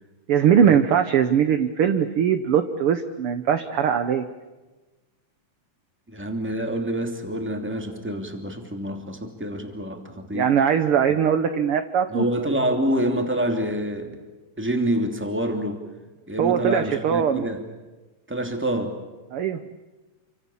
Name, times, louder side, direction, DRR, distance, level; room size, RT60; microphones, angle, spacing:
voice 1, 0.3-4.2 10.3-12.3 16.4-17.5 19.3-19.6, right 8 dB, 60° right, 9 dB, 1.5 m, -21 dB
voice 2, 6.1-10.5 12.1-14.2 14.6-15.8 16.3-17.6 18.3-19.0, right 1 dB, 5° right, 4 dB, 2.5 m, -27 dB
28.5 x 25.5 x 7.3 m, 1.2 s
omnidirectional pair, 3.7 m